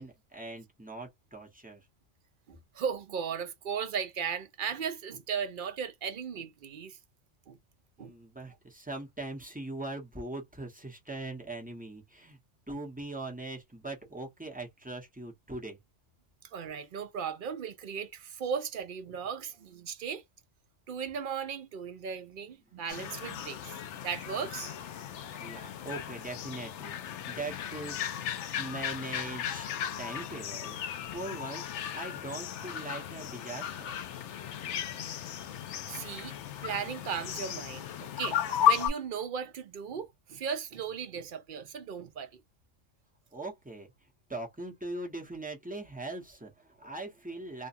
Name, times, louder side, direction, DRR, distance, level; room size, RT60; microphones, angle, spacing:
voice 1, 0.0-1.9 8.0-12.4 12.7-15.8 25.4-29.7 30.0-30.8 31.0-33.9 43.3-43.9 44.3-47.7, right 2 dB, 5° right, 0.9 m, -41 dB
voice 2, 2.5-7.0 7.5-7.6 8.0-8.1 16.4-20.2 20.9-24.7 27.3-27.4 35.5-35.6 35.9-36.4 36.6-42.4, right 7 dB, 60° right, 0.6 m, -37 dB
sound 1, 22.9-38.9, left 10 dB, 70° left, 0.8 m, -35 dB
2.6 x 2.3 x 2.6 m
omnidirectional pair, 1.3 m